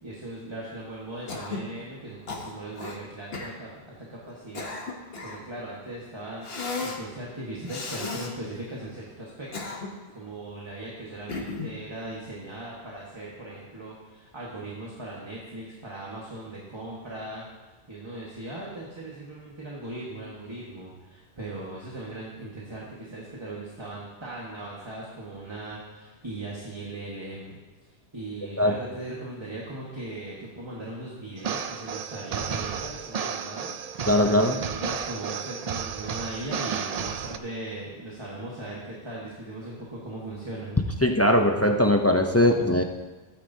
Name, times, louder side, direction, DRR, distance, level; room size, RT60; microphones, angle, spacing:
voice 1, 0.0-4.7 5.2-6.5 6.8-9.7 10.1-17.4 17.9-27.6 28.1-40.8, right 2 dB, 25° right, -5 dB, 1.6 m, -39 dB
Cough, 1.3-1.7 2.3-3.0 3.3-3.6 4.3-5.5 6.4-7.0 7.7-8.3 9.3-10.1 11.3-11.8, left 3 dB, 65° left, 1.4 m, -34 dB
sound 1, 31.4-37.4, right 7 dB, 55° right, 0.4 m, -32 dB
voice 2, 34.1-34.5 41.0-42.8, left 1 dB, 20° left, 4 dB, 0.5 m, -20 dB
15.0 x 9.5 x 2.8 m, 1.2 s
omnidirectional pair, 1.1 m